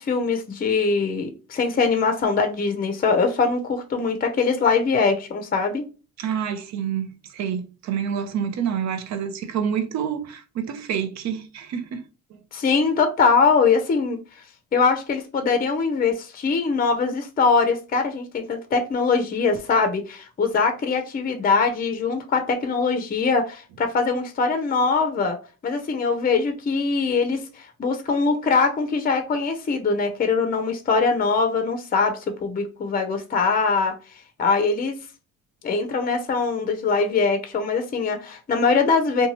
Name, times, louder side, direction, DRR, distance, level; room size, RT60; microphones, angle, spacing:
voice 1, 0.0-5.8 12.5-14.2 14.7-25.4 25.6-34.0 34.4-35.0 35.6-39.3, left 4 dB, 30° left, 0.5 m, -22 dB
voice 2, 6.2-12.0 12.3-12.4, right 8 dB, 65° right, 0.6 m, -28 dB
2.6 x 2.2 x 2.9 m
cardioid pair, 90°, 30 cm